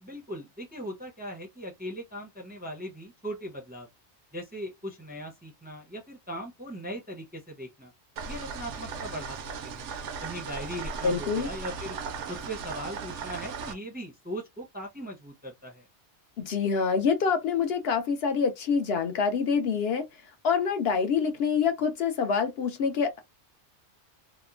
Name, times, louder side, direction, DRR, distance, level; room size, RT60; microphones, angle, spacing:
voice 1, 0.0-3.9 4.3-7.9 8.3-9.4 9.6-9.9 10.2-12.0 12.3-15.8, equal, 10° right, 0.5 m, -39 dB
sound 1, 8.2-13.7, right 5 dB, 85° right, 0.9 m, -37 dB
voice 2, 11.0-11.5 16.4-20.0 20.4-23.2, left 6 dB, 65° left, 0.8 m, -26 dB
2.8 x 2.1 x 2.4 m
omnidirectional pair, 1.2 m